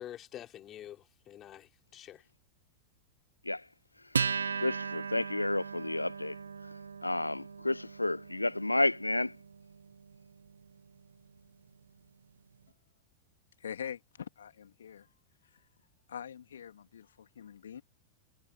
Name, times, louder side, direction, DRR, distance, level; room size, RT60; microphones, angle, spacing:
voice 1, 0.0-2.3, left 11 dB, 30° left, 4.3 m, -47 dB
voice 2, 4.0-6.7 7.0-9.4, left 2 dB, 85° left, 0.8 m, -32 dB
Acoustic guitar, 4.1-11.0, right 6 dB, 75° right, 1.2 m, -38 dB
voice 3, 13.6-15.1 15.4-15.6 16.1-17.8, left 8 dB, 65° left, 2.6 m, -44 dB
figure-of-eight pair, 90°, 0 cm